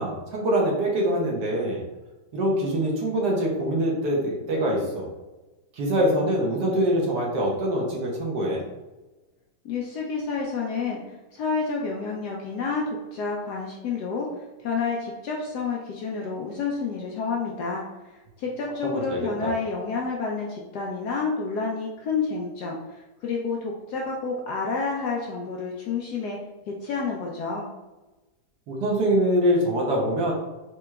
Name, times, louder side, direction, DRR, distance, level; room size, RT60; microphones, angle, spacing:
voice 1, 0.0-1.8 2.3-5.1 5.7-8.6 18.8-19.5 28.7-30.3, equal, 65° right, -2 dB, 1.2 m, -24 dB
voice 2, 9.6-11.0 11.3-17.8 18.4-26.4 26.7-27.7, left 4 dB, 75° left, -2 dB, 0.9 m, -29 dB
4.6 x 2.9 x 2.3 m, 1.1 s
omnidirectional pair, 2.1 m